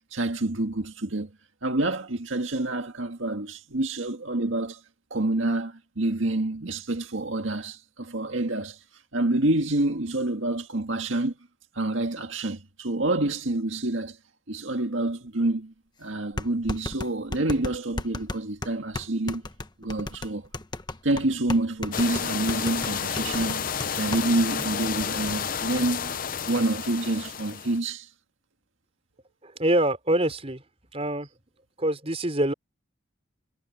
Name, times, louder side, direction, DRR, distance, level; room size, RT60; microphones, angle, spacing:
voice 1, 0.1-1.3 1.6-4.8 5.1-8.8 9.1-11.3 11.8-14.2 14.5-15.7 16.0-19.4 19.8-20.5 21.0-26.2 26.5-28.1, right 2 dB, 85° right, 1.9 m, -27 dB
sound 1, 15.4-15.5 16.4-24.3 24.6-24.7 25.0-25.3, left 2 dB, 20° left, 1.1 m, -34 dB
sound 2, 21.9-27.8, left 7 dB, 45° left, 0.7 m, -31 dB
voice 2, 29.4-30.6 30.9-31.3 31.8-32.5, right 1 dB, 30° right, 4.8 m, -25 dB
head